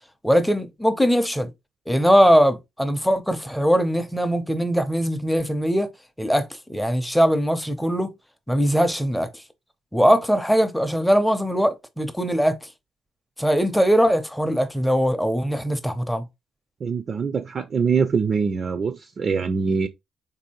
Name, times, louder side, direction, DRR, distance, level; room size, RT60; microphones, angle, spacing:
voice 1, 0.2-1.5 1.9-5.9 6.2-8.1 8.5-9.4 9.9-12.7 13.4-16.3, equal, ahead, 0.6 m, -21 dB
voice 2, 16.8-19.9, right 5 dB, 45° right, 0.4 m, -23 dB
3.8 x 2.7 x 2.8 m
cardioid pair, 90°, 0 cm